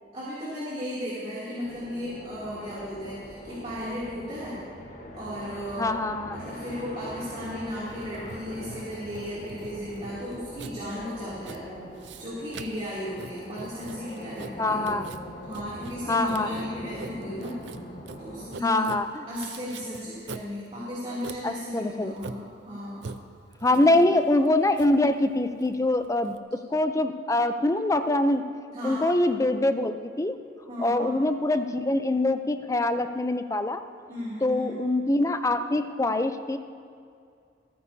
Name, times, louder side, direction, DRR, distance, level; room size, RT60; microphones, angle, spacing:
voice 1, 0.1-4.6 5.1-5.9 6.3-11.8 12.2-15.0 15.4-17.6 18.2-18.9 19.3-23.1 23.8-24.2 28.7-29.1 30.7-31.2 34.1-34.8, equal, 35° right, -9 dB, 2.9 m, -35 dB
sound 1, 1.6-18.5, left 1 dB, 45° left, 1.5 m, -43 dB
voice 2, 5.8-6.4 14.6-15.1 16.1-16.5 18.6-19.3 21.4-22.1 23.6-28.4 28.8-30.4 30.8-33.8 34.4-36.6, left 2 dB, 20° left, 9 dB, 0.5 m, -24 dB
Writing, 7.2-26.4, right 4 dB, 80° right, 0.6 m, -44 dB
27.0 x 9.5 x 2.8 m, 2.3 s
head